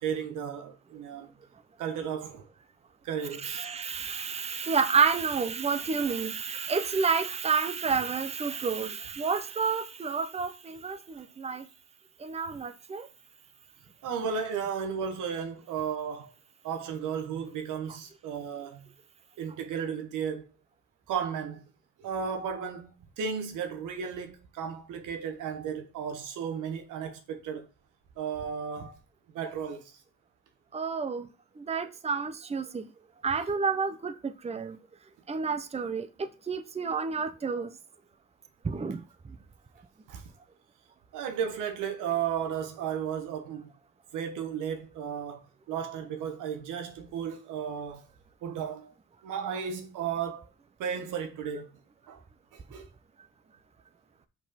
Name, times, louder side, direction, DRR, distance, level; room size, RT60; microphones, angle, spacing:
voice 1, 0.0-1.3 1.8-2.5 3.0-3.7 7.9-8.0 14.0-16.3 16.6-18.9 19.4-20.4 21.1-21.6 22.0-27.7 28.2-29.0 29.3-30.0 40.1-40.2 41.1-43.7 44.1-48.1 48.4-48.9 49.2-50.4 50.8-51.7 52.1-52.2 52.5-52.9, right 7 dB, 90° right, 1.4 m, -34 dB
voice 2, 3.4-11.6 12.2-13.1 30.7-31.3 31.6-32.9 33.2-34.8 35.3-37.7 38.6-39.0, right 5 dB, 20° right, 0.7 m, -30 dB
6.0 x 4.7 x 5.8 m
cardioid pair, 90°, 30 cm